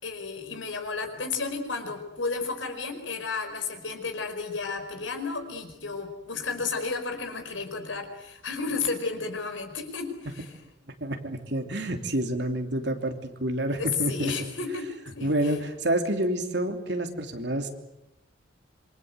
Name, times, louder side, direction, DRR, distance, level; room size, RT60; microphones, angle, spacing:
voice 1, 0.0-10.5 13.8-15.6, left 4 dB, 85° left, 6 dB, 5.1 m, -32 dB
voice 2, 11.0-14.3 15.2-17.7, right 1 dB, 65° right, 5 dB, 3.0 m, -28 dB
26.5 x 24.5 x 8.1 m, 0.88 s
head